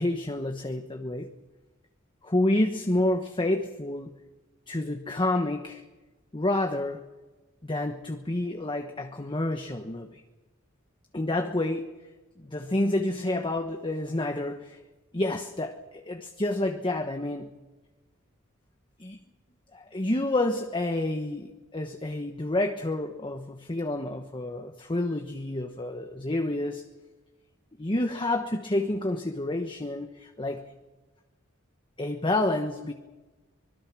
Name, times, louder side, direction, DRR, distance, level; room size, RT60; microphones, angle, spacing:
voice 1, 0.0-1.3 2.2-4.1 4.7-5.8 6.3-7.0 7.6-10.2 11.1-11.9 12.4-14.8 15.1-17.5 19.0-19.2 19.7-26.9 27.8-30.7 32.0-32.9, left 1 dB, 25° left, 5 dB, 1.2 m, -29 dB
25.0 x 21.5 x 6.2 m, 1.2 s
head